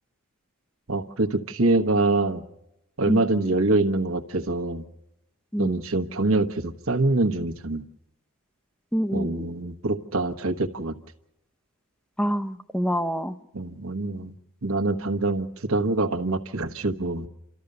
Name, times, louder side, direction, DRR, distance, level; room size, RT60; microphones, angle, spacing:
voice 1, 0.9-2.4 3.0-4.8 5.6-7.8 9.1-10.9 13.5-14.3 14.6-17.3, right 2 dB, 70° right, 8 dB, 1.2 m, -25 dB
voice 2, 8.9-9.5 12.2-13.3, equal, 5° left, 11 dB, 0.6 m, -26 dB
29.5 x 13.5 x 6.7 m, 0.90 s
head